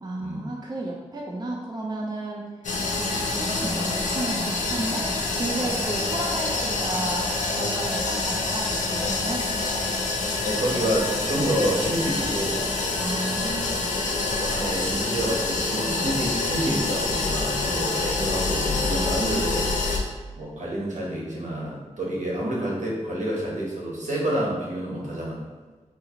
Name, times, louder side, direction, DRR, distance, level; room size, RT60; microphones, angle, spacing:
voice 1, 0.0-2.5 2.9-9.5 13.0-13.9 15.7-16.1, right 2 dB, 35° right, -1 dB, 0.5 m, -33 dB
sound 1, 2.6-20.0, left 3 dB, 85° left, 0.5 m, -26 dB
voice 2, 10.4-12.6 14.3-25.4, right 1 dB, 75° right, -4 dB, 0.9 m, -28 dB
3.7 x 2.5 x 2.8 m, 1.3 s
cardioid pair, 60°, 13 cm